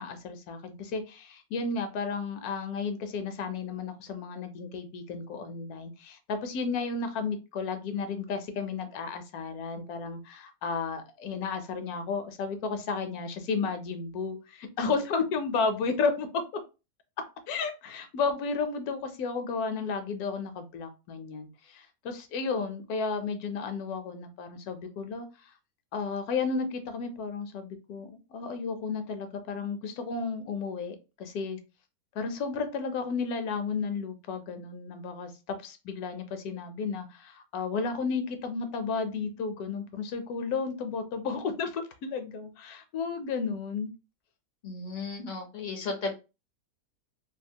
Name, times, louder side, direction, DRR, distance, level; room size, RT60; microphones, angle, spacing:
voice 1, 0.0-16.6 17.5-25.3 25.9-31.6 32.1-43.9, left 4 dB, 80° left, 1.1 m, -33 dB
voice 2, 44.6-46.1, left 3 dB, 60° left, 0.5 m, -34 dB
2.8 x 2.3 x 2.7 m
omnidirectional pair, 1.6 m